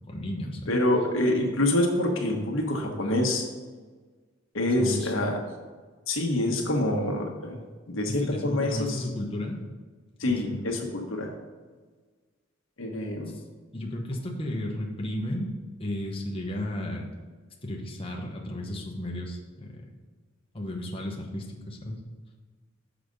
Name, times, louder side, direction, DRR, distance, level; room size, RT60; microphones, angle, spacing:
voice 1, 0.0-0.8 4.7-5.1 8.1-9.6 10.2-10.7 13.3-13.4 13.7-15.5 15.8-17.1 17.6-19.8 20.5-22.0, left 1 dB, 30° left, 0 dB, 0.9 m, -34 dB
voice 2, 0.7-3.4 4.5-5.4 6.1-7.6 7.9-9.0 10.2-11.3 12.8-13.3, left 1 dB, 90° left, 1 dB, 1.2 m, -26 dB
6.4 x 5.0 x 5.2 m, 1.4 s
head